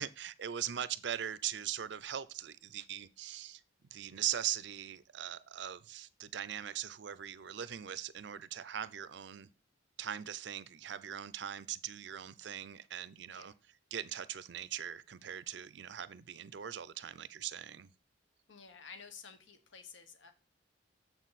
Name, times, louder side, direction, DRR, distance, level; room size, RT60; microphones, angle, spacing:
voice 1, 0.0-3.6 3.9-9.5 10.0-13.5 13.9-17.9, right 10 dB, 60° right, 0.5 m, -40 dB
voice 2, 18.5-20.3, left 6 dB, 70° left, 1.1 m, -52 dB
7.1 x 6.3 x 4.1 m
head